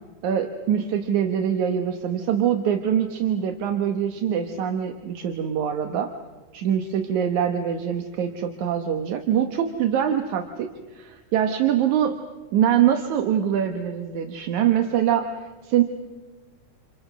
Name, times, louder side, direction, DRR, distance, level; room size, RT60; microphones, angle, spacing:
voice 1, 0.2-6.1 6.5-12.1 12.5-15.8, right 9 dB, 75° right, 6 dB, 2.6 m, -24 dB
29.5 x 29.0 x 6.2 m, 1.3 s
omnidirectional pair, 3.4 m